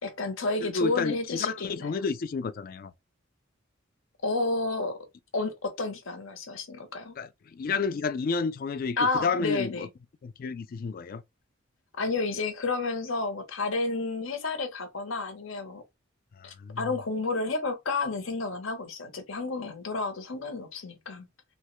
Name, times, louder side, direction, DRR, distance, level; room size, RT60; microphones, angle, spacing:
voice 1, 0.0-2.1 4.2-5.0 5.3-7.2 9.0-9.9 12.0-15.8 16.4-21.3, left 3 dB, 75° left, 0.9 m, -31 dB
voice 2, 0.6-2.9 7.2-9.9 10.2-11.2 16.4-16.9, left 5 dB, 45° left, 0.3 m, -31 dB
3.2 x 2.2 x 3.0 m
head